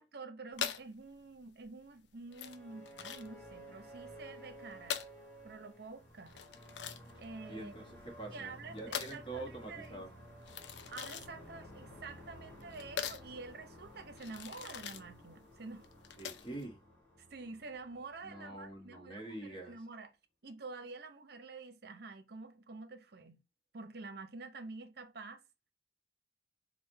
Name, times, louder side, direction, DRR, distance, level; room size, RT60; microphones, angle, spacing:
voice 1, 0.0-5.0 5.4-6.4 7.2-7.8 8.3-10.0 10.9-15.9 17.3-20.1 20.4-23.4 23.7-25.4, right 3 dB, 60° right, 0.7 m, -48 dB
sound 1, 0.5-16.7, left 8 dB, 75° left, 0.5 m, -44 dB
sound 2, 2.3-19.2, equal, 10° left, 1.5 m, -54 dB
voice 2, 7.5-10.1 16.2-16.8 18.2-19.7, right 2 dB, 30° left, 1.4 m, -45 dB
3.6 x 2.5 x 4.5 m
head